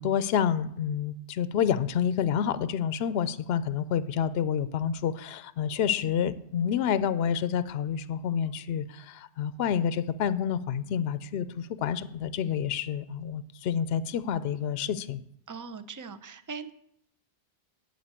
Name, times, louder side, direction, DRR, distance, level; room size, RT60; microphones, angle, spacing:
voice 1, 0.0-15.2, left 8 dB, 70° left, 14 dB, 0.8 m, -28 dB
voice 2, 15.5-16.7, right 5 dB, 25° right, 11 dB, 0.5 m, -40 dB
9.3 x 7.6 x 8.8 m, 0.75 s
omnidirectional pair, 1.1 m